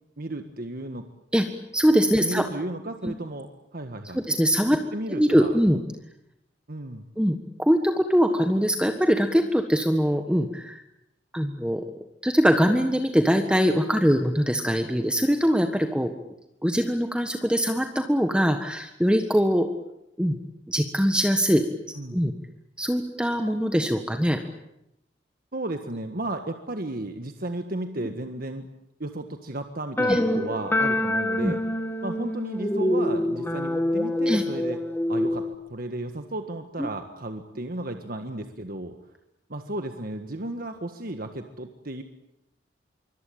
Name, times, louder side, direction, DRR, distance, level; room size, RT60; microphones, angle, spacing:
voice 1, 0.2-1.0 2.1-3.5 3.7-4.2 4.9-5.6 6.7-7.1 21.9-22.2 25.5-28.7 29.0-31.6 32.0-34.8 35.1-39.0 39.5-42.0, right 1 dB, 50° right, 6 dB, 1.7 m, -34 dB
voice 2, 1.7-2.4 3.0-3.1 4.1-4.8 5.1-5.8 7.2-10.8 11.3-11.8 12.2-16.1 16.6-19.7 20.2-20.4 20.7-21.6 22.1-22.3 22.8-24.4 30.1-30.2 31.4-31.5 34.3-34.4 36.8-36.9, equal, 5° right, 6 dB, 1.5 m, -22 dB
sound 1, 30.0-35.5, left 1 dB, 10° left, 2.0 m, -26 dB
25.5 x 24.5 x 8.7 m, 0.83 s
head